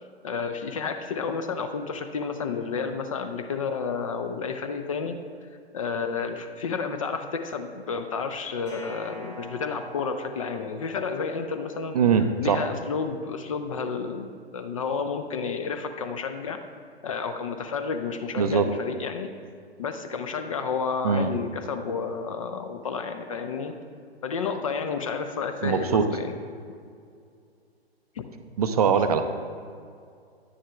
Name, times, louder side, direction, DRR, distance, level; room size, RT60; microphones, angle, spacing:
voice 1, 0.2-5.2 5.7-12.0 12.4-16.6 17.0-19.3 19.8-23.7 24.2-26.3 28.2-28.3 28.9-29.0, left 5 dB, 35° left, 7 dB, 0.4 m, -31 dB
sound 1, 8.7-11.7, equal, 10° left, 0.8 m, -46 dB
voice 2, 11.9-12.6 18.4-18.7 21.0-21.3 25.6-26.0 28.6-29.2, right 6 dB, 40° right, 8 dB, 0.4 m, -22 dB
9.8 x 9.6 x 2.3 m, 2.3 s
figure-of-eight pair, 115°, 32 cm